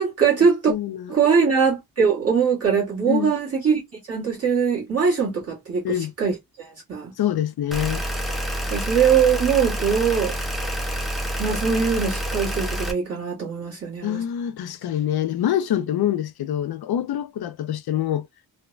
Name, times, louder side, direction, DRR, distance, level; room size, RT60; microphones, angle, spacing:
voice 1, 0.0-0.7 1.1-3.8 4.1-5.8 6.2-7.1 8.7-10.3 11.4-14.2, right 6 dB, 40° right, 1.3 m, -21 dB
voice 2, 0.7-1.1 3.1-3.3 5.8-6.1 7.2-8.0 14.0-18.3, left 11 dB, 80° left, 0.5 m, -25 dB
sound 1, 7.7-12.9, equal, ahead, 0.5 m, -28 dB
3.2 x 2.1 x 2.4 m
wide cardioid pair, 175°, 37 cm